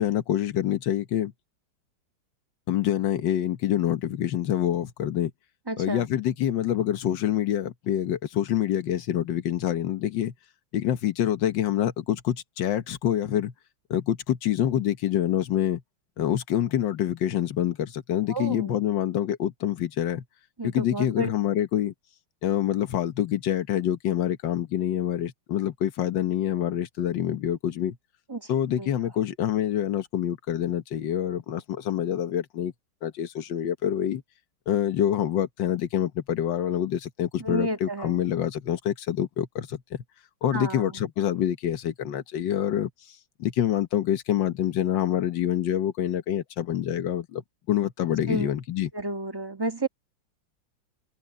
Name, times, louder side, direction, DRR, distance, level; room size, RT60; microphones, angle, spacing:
voice 1, 0.0-1.3 2.7-5.3 5.8-10.3 10.7-13.5 13.9-15.8 16.2-20.2 20.6-21.9 22.4-28.0 28.5-32.7 33.0-34.2 34.7-40.0 40.4-42.9 43.4-48.9, left 11 dB, 65° left, 1.8 m, -26 dB
voice 2, 5.7-6.0 18.3-18.7 20.6-21.3 28.3-28.5 28.8-28.9 37.4-38.2 40.5-41.0 48.3-48.5 48.9-49.9, right 2 dB, 10° right, 1.5 m, -31 dB
omnidirectional pair, 2.3 m